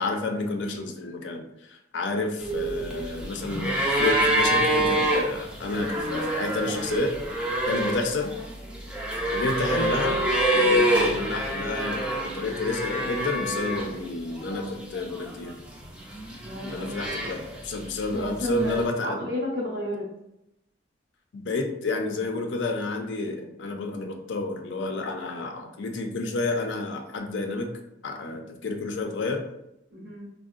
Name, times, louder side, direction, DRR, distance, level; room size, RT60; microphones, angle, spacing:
voice 1, 0.0-7.1 7.7-8.3 9.3-10.2 10.5-15.6 16.6-19.2 21.3-27.7 28.0-29.5, left 3 dB, 85° left, 3 dB, 0.4 m, -30 dB
sound 1, 2.4-14.1 14.4-15.3 16.0-17.7 18.8-18.9, right 1 dB, 5° right, 0.4 m, -26 dB
voice 2, 16.4-17.3 18.1-20.1 29.9-30.3, left 1 dB, 55° right, -7 dB, 0.6 m, -32 dB
3.6 x 2.0 x 2.4 m, 0.83 s
head